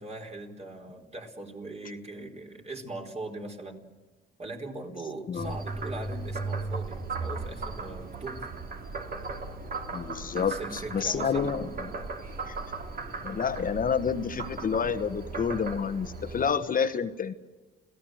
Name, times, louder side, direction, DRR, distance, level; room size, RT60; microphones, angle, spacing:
voice 1, 0.0-3.9 4.4-8.5 10.3-11.6, right 2 dB, 30° right, 2 dB, 4.4 m, -40 dB
Frog, 5.4-16.5, right 3 dB, 50° right, 3.1 m, -37 dB
voice 2, 9.9-11.7 12.5-12.6 13.2-17.3, left 6 dB, 45° left, 9 dB, 1.3 m, -29 dB
27.0 x 17.0 x 7.9 m, 1.3 s
cardioid pair, 90°, 20 cm